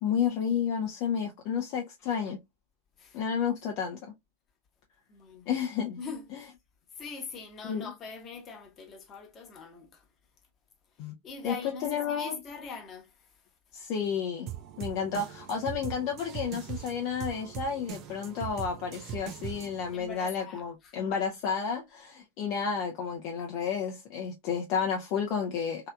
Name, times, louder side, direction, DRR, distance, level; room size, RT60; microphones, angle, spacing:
voice 1, 0.0-2.4 3.1-4.1 5.5-6.0 6.3-6.4 7.6-7.9 11.0-11.1 11.4-11.5 11.8-12.4 13.7-14.5 14.8-25.9, left 7 dB, 45° left, 0.5 m, -31 dB
voice 2, 5.1-5.5 6.0-6.5 7.0-10.0 11.2-13.3 19.9-20.9, left 5 dB, 25° left, 0.9 m, -42 dB
sound 1, 14.5-20.0, right 11 dB, 35° right, 0.5 m, -41 dB
3.1 x 2.8 x 2.3 m
figure-of-eight pair, 90°, 0 cm